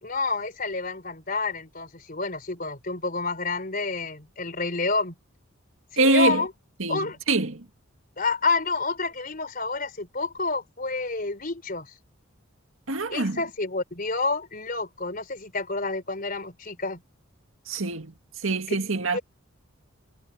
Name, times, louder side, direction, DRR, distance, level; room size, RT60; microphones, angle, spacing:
voice 1, 0.0-5.1 5.9-6.5 6.9-7.2 8.2-11.9 13.1-17.0 18.7-18.8 19.1-19.2, left 3 dB, 45° left, 4.2 m, -29 dB
voice 2, 6.0-6.4 6.8-7.7 12.9-13.4 17.7-18.1 18.4-19.2, right 2 dB, 75° right, 2.0 m, -24 dB
head